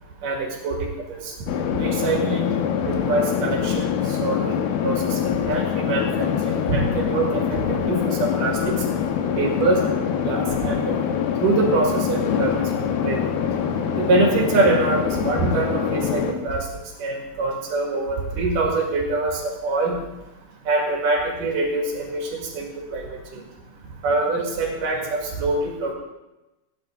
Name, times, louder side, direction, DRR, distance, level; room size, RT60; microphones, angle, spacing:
voice 1, 0.2-1.3 1.8-2.6 2.9-4.4 4.8-8.8 9.4-9.8 10.2-11.0 11.4-12.6 13.0-13.3 14.0-16.7 17.0-20.0 20.7-23.4 24.0-25.9, right 3 dB, 65° right, 1 dB, 3.4 m, -24 dB
sound 1, 1.5-16.3, left 8 dB, 90° left, 2.8 m, -24 dB
16.5 x 9.9 x 3.7 m, 1.0 s
omnidirectional pair, 4.3 m